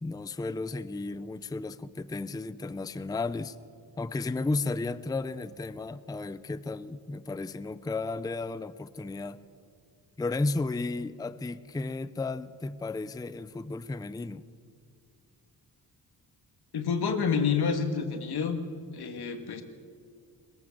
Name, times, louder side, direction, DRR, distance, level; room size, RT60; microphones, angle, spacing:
voice 1, 0.0-3.6 4.0-9.4 10.2-14.5, left 3 dB, 10° left, 15 dB, 0.5 m, -33 dB
voice 2, 16.7-18.6 18.9-19.6, left 6 dB, 80° left, 7 dB, 2.0 m, -28 dB
22.0 x 22.0 x 7.3 m, 2.2 s
wide cardioid pair, 120°, 38 cm